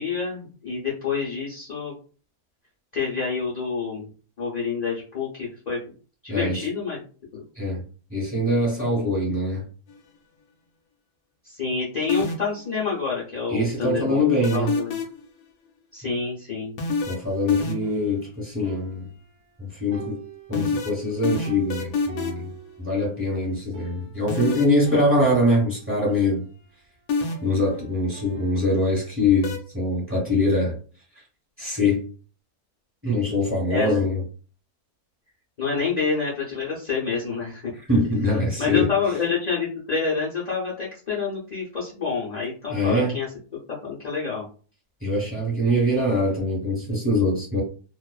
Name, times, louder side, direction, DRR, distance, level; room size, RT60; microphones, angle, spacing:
voice 1, 0.0-2.0 2.9-4.1 4.4-5.8 6.2-7.0 7.3-7.4 11.4-14.2 14.5-14.9 15.9-16.7 33.7-34.0 35.6-37.7 38.6-43.3 43.8-44.5, left 5 dB, 55° left, -7 dB, 0.4 m, -28 dB
voice 2, 6.3-6.6 7.5-7.8 8.1-9.6 13.5-14.7 17.1-19.1 19.6-20.2 20.5-22.5 22.8-26.4 27.4-30.8 31.6-32.0 33.0-34.2 37.9-38.9 42.7-43.2 45.0-47.6, left 1 dB, 10° right, -5 dB, 1.0 m, -23 dB
sound 1, 12.1-12.6 14.4-15.3 16.8-18.0 20.5-22.5 24.3-24.8 27.1-27.6 29.4-29.6, left 4 dB, 75° left, 1.0 m, -26 dB
sound 2, 17.8-19.6 19.9-23.2 23.5-23.6 23.7-24.3 24.9-26.9 27.3-28.9, right 7 dB, 50° right, 0.9 m, -44 dB
2.5 x 2.2 x 2.3 m, 0.39 s
omnidirectional pair, 1.6 m